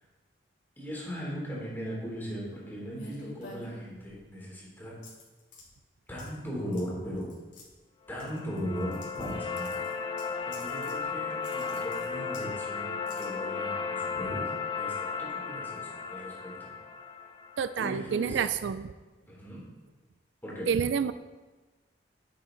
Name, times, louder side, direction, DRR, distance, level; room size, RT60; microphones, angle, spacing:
voice 1, 0.8-5.0 6.1-7.3 8.1-10.1 10.4-14.5 14.8-16.7 17.8-18.5 19.3-19.6 20.4-20.7, equal, 10° left, -5 dB, 3.3 m, -38 dB
sound 1, 2.9-4.3 5.0-5.6 6.2-6.5 6.7-6.8 7.2-7.6 8.2-9.3 9.6-11.0 11.3-12.5 13.0-13.2, left 2 dB, 75° left, 3.1 m, -48 dB
sound 2, 8.1-18.2, left 5 dB, 30° left, 0.7 m, -35 dB
voice 2, 17.6-18.9 20.7-21.1, right 7 dB, 70° right, 13 dB, 0.3 m, -28 dB
10.5 x 7.4 x 3.9 m, 1.2 s
head